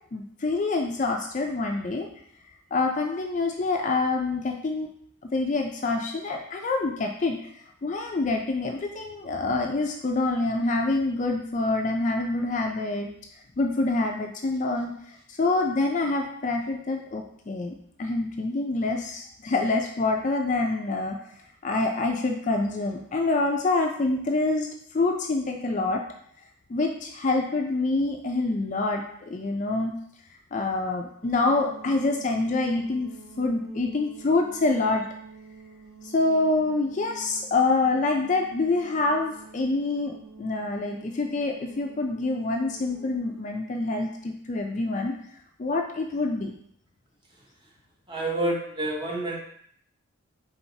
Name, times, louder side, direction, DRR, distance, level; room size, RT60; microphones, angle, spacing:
voice 1, 0.1-2.1 2.7-4.9 5.2-7.4 7.8-13.1 13.6-14.9 15.4-21.2 21.6-24.7 24.9-26.0 26.7-29.9 30.5-33.1 33.4-35.0 36.1-45.1 45.6-46.5, left 3 dB, 35° left, 2 dB, 0.3 m, -26 dB
sound 1, 31.2-43.6, right 4 dB, 80° right, 1.1 m, -48 dB
voice 2, 48.1-49.4, right 1 dB, 20° right, -2 dB, 0.8 m, -28 dB
4.4 x 3.8 x 2.7 m, 0.66 s
head